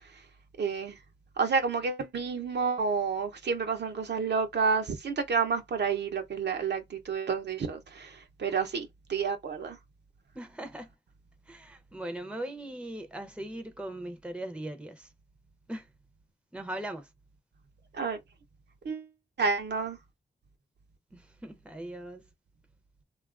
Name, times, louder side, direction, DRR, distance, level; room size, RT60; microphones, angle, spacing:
voice 1, 0.6-1.0 1.4-9.8 17.9-18.2 18.8-19.1 19.4-20.0, right 5 dB, 60° right, 0.6 m, -30 dB
voice 2, 10.3-10.9 11.5-15.1 15.7-15.9 16.5-17.1 21.1-22.2, right 1 dB, 5° right, 0.6 m, -39 dB
2.8 x 2.3 x 2.4 m
cardioid pair, 45°, 20 cm